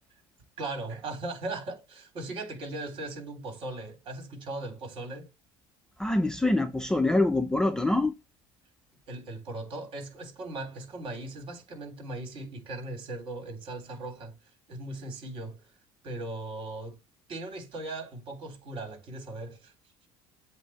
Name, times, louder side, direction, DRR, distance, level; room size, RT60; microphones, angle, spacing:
voice 1, 0.6-5.3 9.1-14.3 14.7-15.6 16.0-17.0 17.3-19.7, right 2 dB, 50° right, 3.4 m, -38 dB
voice 2, 6.0-8.1, left 2 dB, 5° left, 0.6 m, -25 dB
8.2 x 2.8 x 4.3 m
supercardioid pair, 115°, 11 cm